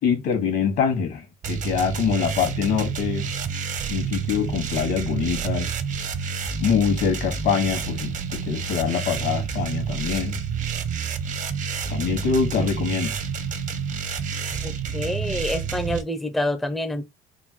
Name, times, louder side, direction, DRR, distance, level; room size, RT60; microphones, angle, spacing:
voice 1, 0.0-3.3 3.9-5.7 6.6-10.4 11.9-13.2, left 7 dB, 75° left, 1.4 m, -24 dB
sound 1, 1.4-16.0, right 6 dB, 50° right, 0.6 m, -29 dB
voice 2, 14.6-17.0, left 1 dB, ahead, 0.5 m, -27 dB
3.6 x 2.2 x 2.9 m
cardioid pair, 110°, 17 cm